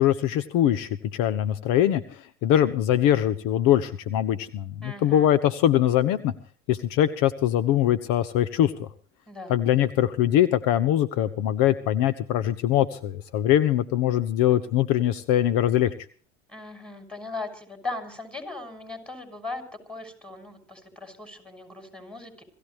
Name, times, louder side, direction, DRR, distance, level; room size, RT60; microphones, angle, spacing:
voice 1, 0.0-6.3 6.7-8.9 9.5-15.9, left 11 dB, 65° left, 14 dB, 1.2 m, -22 dB
voice 2, 4.8-5.3 9.3-9.5 16.5-19.6 19.9-22.4, left 2 dB, 5° left, 5 dB, 6.2 m, -38 dB
26.0 x 15.5 x 3.1 m, 0.43 s
supercardioid pair, 90°, 36 cm